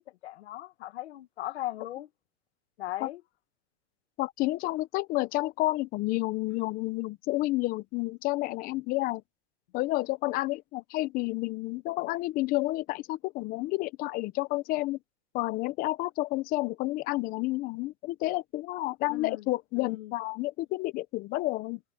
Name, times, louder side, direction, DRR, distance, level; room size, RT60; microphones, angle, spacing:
voice 1, 0.2-2.1 2.8-3.2 19.1-19.5 19.8-20.1, left 15 dB, 75° left, 2.0 m, -38 dB
voice 2, 4.2-9.2 9.7-15.0 15.3-21.8, left 19 dB, 25° left, 0.7 m, -30 dB
supercardioid pair, 155°, 33 cm